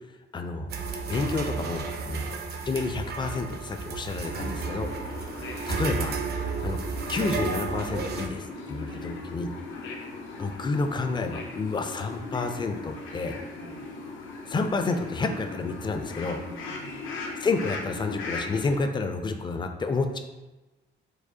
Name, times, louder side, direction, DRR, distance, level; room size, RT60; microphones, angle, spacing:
voice 1, 0.3-0.7 1.1-2.3 2.7-4.9 5.4-6.2 6.6-6.8 7.1-9.5 10.4-13.4 14.5-16.4 17.4-20.2, left 3 dB, 25° left, 6 dB, 0.3 m, -30 dB
sound 1, 0.7-8.3, right 5 dB, 55° right, 0.5 m, -32 dB
sound 2, 4.2-18.8, left 3 dB, 85° left, 0.5 m, -38 dB
voice 2, 4.3-4.8 8.8-9.0 13.5-13.8 16.3-17.1, right 1 dB, 80° right, -4 dB, 1.1 m, -46 dB
4.7 x 2.1 x 2.7 m, 1.1 s
cardioid pair, 90°, 20 cm